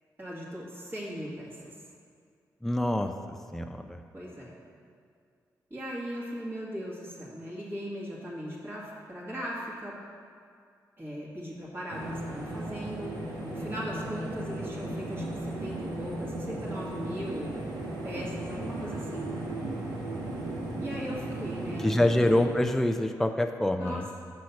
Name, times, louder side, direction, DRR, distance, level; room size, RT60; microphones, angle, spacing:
voice 1, 0.2-1.7 4.1-4.5 5.7-10.0 11.0-17.6 18.0-19.3 20.8-22.2 23.8-24.1, equal, 30° right, -6 dB, 2.1 m, -38 dB
voice 2, 2.6-3.1 3.5-4.0 21.8-24.1, left 1 dB, 5° left, 6 dB, 0.5 m, -26 dB
sound 1, 11.9-22.5, right 1 dB, 85° right, 1.4 m, -36 dB
6.1 x 5.8 x 5.9 m, 2.2 s
supercardioid pair, 45°, 8 cm